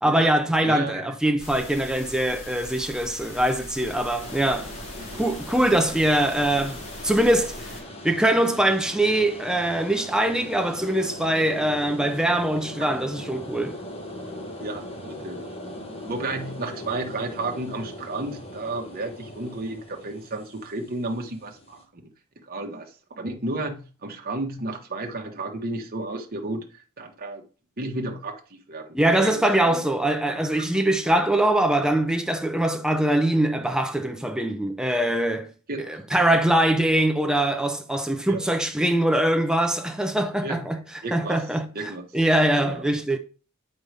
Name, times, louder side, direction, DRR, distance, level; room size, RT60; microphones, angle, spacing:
voice 1, 0.0-4.7 5.2-7.7 8.0-13.8 28.9-35.5 35.9-43.2, right 1 dB, 5° right, 0.5 m, -23 dB
voice 2, 0.6-1.0 5.1-5.2 14.6-15.5 16.1-21.8 22.5-26.7 27.0-27.4 27.8-28.4 28.7-28.9 29.2-29.8 30.6-30.7 35.7-35.9 38.3-38.4 40.4-40.6 41.0-41.4 41.7-42.0 42.6-42.8, right 2 dB, 40° right, 1.2 m, -32 dB
sound 1, 1.4-7.8, left 1 dB, 85° left, 2.9 m, -40 dB
sound 2, 4.2-21.8, left 1 dB, 25° left, 1.3 m, -40 dB
7.8 x 5.4 x 3.4 m
head